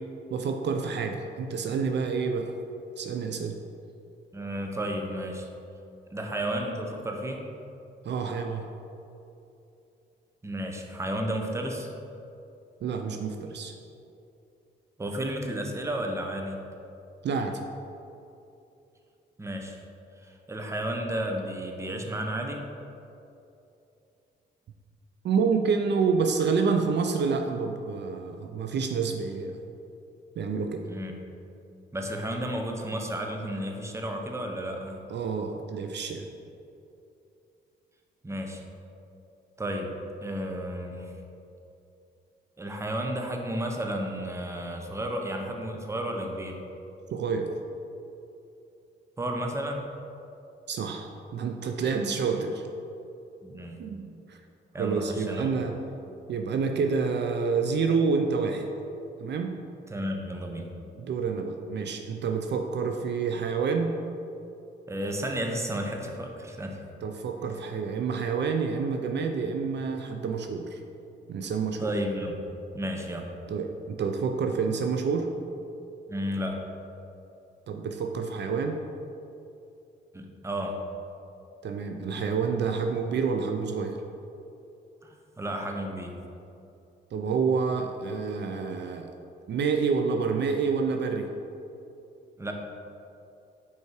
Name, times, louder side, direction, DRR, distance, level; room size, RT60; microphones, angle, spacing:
voice 1, 0.3-2.5 3.0-3.6 8.0-8.7 12.8-13.7 17.2-17.6 25.2-29.5 30.4-30.8 35.1-36.3 47.1-47.5 50.7-52.6 53.8-54.4 54.8-55.8 56.3-58.7 59.2-59.6 61.0-63.9 67.0-70.8 71.3-71.9 73.5-75.3 77.7-78.8 81.6-84.0 87.1-89.1 89.5-91.3, right 5 dB, 60° right, 5 dB, 0.5 m, -28 dB
voice 2, 4.3-5.5 6.1-7.5 10.4-11.9 15.0-16.6 19.4-19.8 20.2-22.6 30.9-31.1 31.9-35.0 38.2-38.6 39.6-39.9 40.2-41.1 42.6-46.6 49.2-49.9 53.4-53.8 54.7-55.5 59.9-60.7 64.9-66.8 71.8-72.3 72.7-73.3 76.1-76.7 80.1-80.8 85.0-86.1 92.4-92.5, right 1 dB, 15° right, 2 dB, 0.8 m, -32 dB
5.5 x 4.7 x 4.7 m, 2.8 s
cardioid pair, 85°, 20 cm